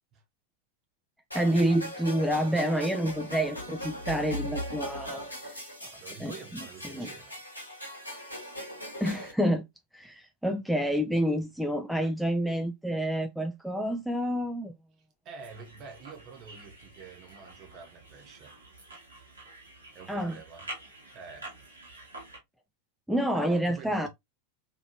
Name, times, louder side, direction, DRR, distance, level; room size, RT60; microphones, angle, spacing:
sound 1, 1.3-9.3, equal, 85° left, 1.1 m, -39 dB
voice 1, 1.3-5.6 6.2-6.3 6.9-7.1 9.0-9.7 9.9-14.8 20.1-20.4 23.1-24.1, equal, ahead, 0.3 m, -28 dB
voice 2, 5.5-7.4 15.2-18.6 19.9-20.7 21.1-21.5 23.3-24.1, right 5 dB, 35° right, 0.9 m, -47 dB
sound 2, 15.4-22.4, right 2 dB, 75° right, 1.1 m, -48 dB
2.9 x 2.6 x 2.5 m
figure-of-eight pair, 90°, 0 cm